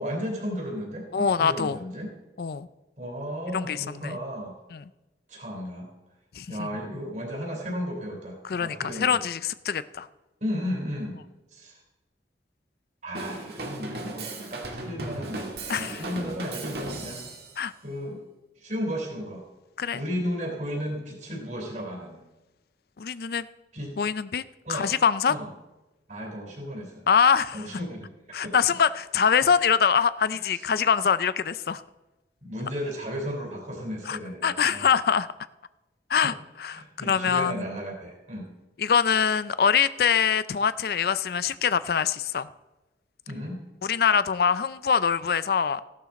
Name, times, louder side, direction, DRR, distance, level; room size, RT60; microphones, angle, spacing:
voice 1, 0.0-2.1 3.0-4.5 5.3-5.9 6.5-9.2 10.4-11.2 11.5-11.7 13.0-15.4 15.7-17.2 17.8-18.2 18.6-19.4 19.9-22.2 23.7-23.9 24.6-24.9 25.3-25.5 26.1-27.0 27.5-28.1 28.4-28.5 30.3-30.7 32.4-34.9 36.2-36.3 36.7-38.5 43.3-43.6, equal, 40° right, 0 dB, 3.8 m, -34 dB
voice 2, 1.1-1.8 2.4-2.7 3.5-4.2 4.7-4.8 6.4-6.7 8.4-10.1 15.7-16.0 17.6-17.7 19.8-20.0 23.0-23.5 24.0-24.4 24.7-25.3 27.1-27.6 28.3-31.8 34.1-35.3 36.1-37.6 38.8-42.5 43.8-45.8, left 6 dB, 55° left, 15 dB, 0.4 m, -24 dB
Drum kit / Drum, 13.1-17.6, right 2 dB, 60° right, 2.1 m, -36 dB
15.0 x 11.5 x 4.1 m, 1.0 s
head